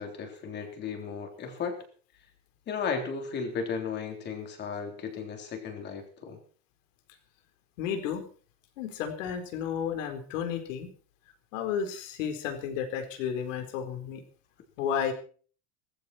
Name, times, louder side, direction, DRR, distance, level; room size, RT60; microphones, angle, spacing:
voice 1, 0.0-1.8 2.7-6.4, left 5 dB, 25° left, 4 dB, 3.6 m, -35 dB
voice 2, 7.8-8.3 8.8-10.9 11.5-14.2 14.8-15.1, left 8 dB, 75° left, 6 dB, 4.3 m, -32 dB
18.5 x 15.0 x 4.5 m, 0.43 s
cardioid pair, 175°, 38 cm